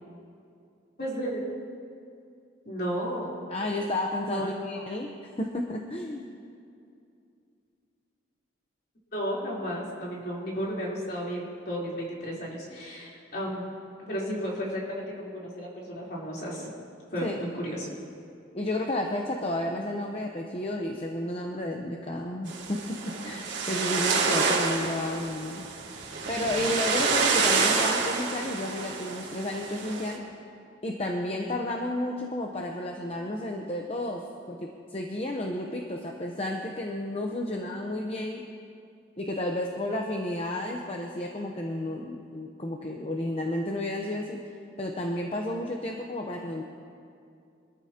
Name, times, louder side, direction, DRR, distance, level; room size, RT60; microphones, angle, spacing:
voice 1, 1.0-1.4 2.7-3.3 4.2-4.6 9.1-13.7 14.1-16.7 17.1-17.9, equal, 50° left, -5 dB, 3.7 m, -33 dB
voice 2, 3.5-5.1 5.4-6.3 17.2-17.4 18.5-25.7 26.3-30.2 30.8-38.4 39.2-44.4 44.8-46.6, left 1 dB, 30° left, 1 dB, 0.8 m, -32 dB
sound 1, 22.5-30.1, right 4 dB, 80° right, 2.5 m, -28 dB
24.5 x 13.5 x 2.9 m, 2.5 s
head